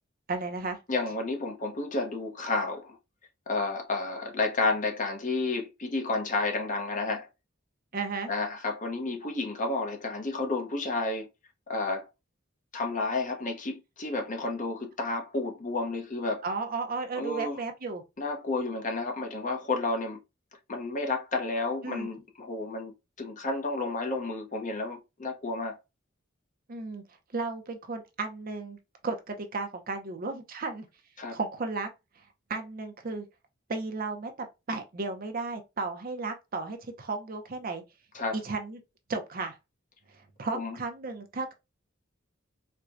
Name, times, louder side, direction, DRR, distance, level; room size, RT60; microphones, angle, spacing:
voice 1, 0.3-0.8 7.9-8.3 16.4-18.0 21.8-22.1 26.7-27.0 27.3-28.8 29.0-30.9 31.3-31.9 32.5-33.3 33.7-34.3 34.7-37.8 38.3-38.8 39.1-39.5 40.4-41.5, right 3 dB, 45° right, 0.6 m, -34 dB
voice 2, 0.9-3.0 3.5-7.3 8.3-11.3 11.7-12.0 12.7-16.4 17.1-17.6 18.2-20.2 20.7-25.8 31.2-31.4 38.1-38.4 40.5-40.8, left 3 dB, 40° left, 0.8 m, -31 dB
4.3 x 2.2 x 2.5 m
head